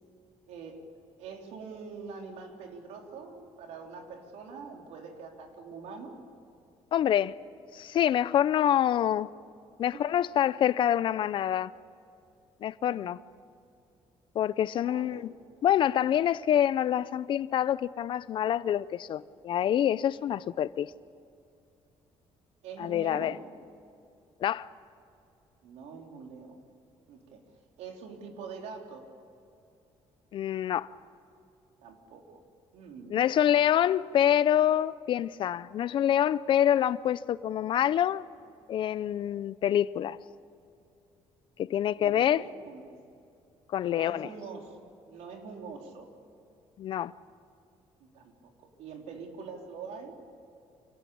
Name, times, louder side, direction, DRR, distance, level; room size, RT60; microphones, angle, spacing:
voice 1, 0.5-0.9 1.2-6.2 9.9-10.1 12.8-13.1 14.8-15.3 22.6-23.4 25.6-26.7 27.1-27.4 27.8-29.1 31.8-32.5 32.7-33.4 42.0-42.9 43.8-44.8 45.1-46.1 48.0-50.2, right 5 dB, 90° right, 3.6 m, -44 dB
voice 2, 6.9-7.3 7.7-9.3 9.8-11.7 12.6-13.2 14.4-15.3 15.6-20.9 22.8-23.3 24.4-24.7 30.3-30.9 33.1-38.2 38.7-40.2 41.6-42.4 43.7-44.3 46.8-47.1, left 10 dB, 50° left, 0.5 m, -26 dB
27.5 x 19.0 x 8.6 m
cardioid pair, 165°, 11 cm